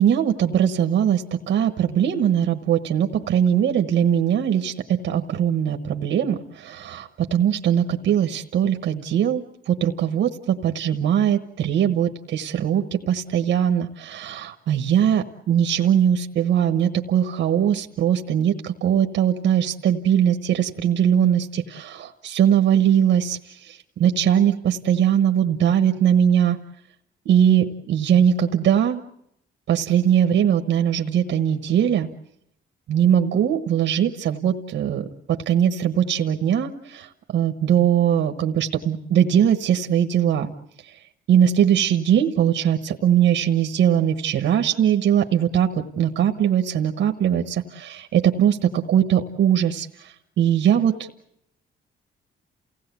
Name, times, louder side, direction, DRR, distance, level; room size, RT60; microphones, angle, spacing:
voice 1, 0.0-26.6 27.2-29.0 29.7-32.1 32.9-40.5 41.3-51.1, right 9 dB, 70° right, 5 dB, 1.2 m, -21 dB
29.0 x 17.0 x 8.3 m, 0.78 s
cardioid pair, 90°, 20 cm